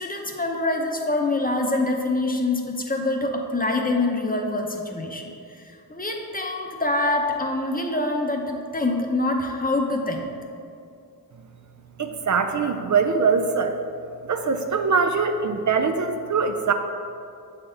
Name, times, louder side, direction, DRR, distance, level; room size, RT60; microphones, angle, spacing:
voice 1, 0.0-5.6 5.9-10.3, left 2 dB, 25° left, 2 dB, 0.7 m, -25 dB
voice 2, 12.0-13.7 14.3-16.7, right 5 dB, 55° right, 6 dB, 0.5 m, -22 dB
7.5 x 4.3 x 3.9 m, 2.5 s
wide cardioid pair, 60°, 36 cm